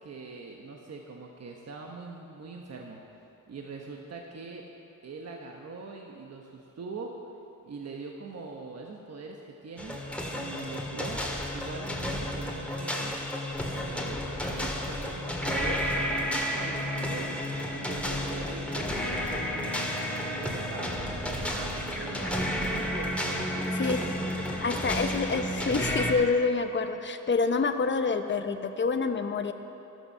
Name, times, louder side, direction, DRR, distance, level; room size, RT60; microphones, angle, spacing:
voice 1, 0.0-3.2 3.5-4.6 5.0-7.1 7.6-10.0 10.3-11.2 11.5-13.1 13.7-17.3 17.7-19.9 20.3-25.0 25.3-25.5, right 3 dB, 50° right, 1 dB, 1.2 m, -42 dB
sound 1, 9.8-26.1, equal, 5° left, 1.9 m, -31 dB
voice 2, 24.6-29.5, left 4 dB, 35° left, 8 dB, 0.8 m, -27 dB
14.0 x 12.5 x 5.7 m, 3.0 s
cardioid pair, 100°, 33 cm